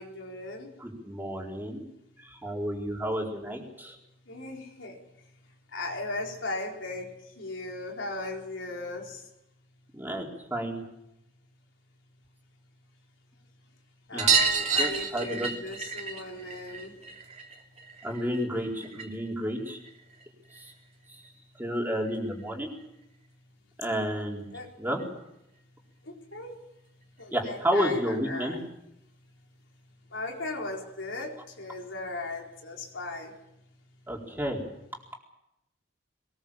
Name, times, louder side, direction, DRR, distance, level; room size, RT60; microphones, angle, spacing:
voice 1, 0.0-0.7 4.3-5.0 5.7-9.3 14.1-17.0 24.5-24.7 26.0-26.6 27.2-28.6 30.1-33.4, left 2 dB, 80° left, 4.3 m, -37 dB
voice 2, 0.8-1.8 2.2-4.0 9.9-10.8 14.1-14.3 14.8-15.5 18.0-19.8 20.5-20.7 21.1-21.2 21.6-22.7 23.8-24.5 24.8-25.0 27.3-28.6 34.1-34.6, equal, 10° right, 4.4 m, -31 dB
sound 1, 14.2-19.3 19.6-20.7 22.1-22.2 22.4-22.5 22.8-22.9 24.2-24.3 24.6-24.7 25.0-25.1 26.3-26.4 27.2-27.3, right 5 dB, 35° right, 2.8 m, -30 dB
22.5 x 20.5 x 7.2 m
head